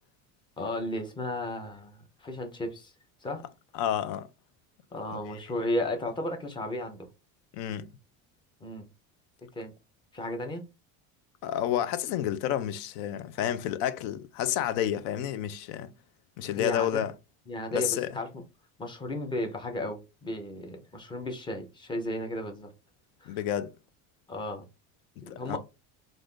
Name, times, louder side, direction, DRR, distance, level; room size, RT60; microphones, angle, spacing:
voice 1, 0.6-2.9 3.2-3.4 4.9-7.1 8.6-8.9 9.5-9.7 10.1-10.6 16.5-17.0 17.5-18.4 18.8-22.7 23.2-23.4 24.3-24.6 25.2-25.6, left 1 dB, 15° left, 0.5 m, -34 dB
voice 2, 3.7-4.3 5.2-5.4 7.5-7.9 11.4-15.9 16.4-17.1 17.7-18.1 23.3-23.7 25.3-25.6, left 11 dB, 85° left, 0.5 m, -30 dB
2.5 x 2.5 x 3.5 m
cardioid pair, 155°, 37 cm